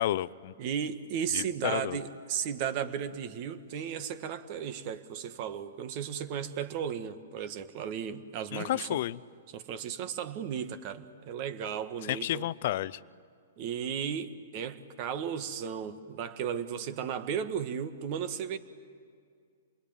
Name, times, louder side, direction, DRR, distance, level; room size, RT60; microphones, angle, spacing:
voice 1, 0.0-0.5 1.3-2.0 8.5-9.2 12.0-13.0, left 13 dB, 55° left, 18 dB, 0.6 m, -31 dB
voice 2, 0.6-9.0 9.5-12.5 13.6-18.6, right 8 dB, 45° right, 10 dB, 1.7 m, -35 dB
27.0 x 21.0 x 9.0 m, 2.2 s
hypercardioid pair, 135°, 0 cm